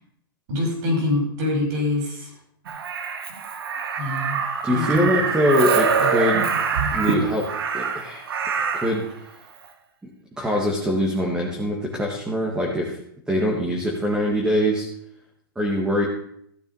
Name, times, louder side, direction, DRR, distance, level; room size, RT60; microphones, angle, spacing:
voice 1, 0.5-2.3 4.0-5.3 6.0-6.1, left 2 dB, 50° right, 0 dB, 5.7 m, -25 dB
Crow, 2.7-9.0 10.4-10.6, right 6 dB, 80° right, 1.7 m, -25 dB
voice 2, 4.6-6.5 6.9-7.5 7.7-8.3 8.7-9.0 10.4-13.0 13.3-14.9 15.6-16.1, equal, 5° right, -1 dB, 1.7 m, -23 dB
15.0 x 6.5 x 5.5 m, 0.73 s
hypercardioid pair, 150°, 12 cm